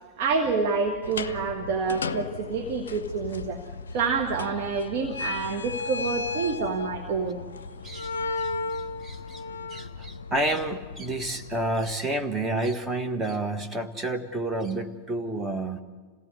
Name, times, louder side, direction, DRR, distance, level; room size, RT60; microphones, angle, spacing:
voice 1, 0.2-3.6 3.9-7.4, right 4 dB, 50° right, 4 dB, 1.7 m, -27 dB
sound 1, 1.0-11.9, left 4 dB, 65° left, 0.6 m, -35 dB
voice 2, 7.8-9.4 9.7-15.8, right 2 dB, 15° right, 5 dB, 1.5 m, -30 dB
26.5 x 17.0 x 8.2 m, 1.5 s
figure-of-eight pair, 90°, 0 cm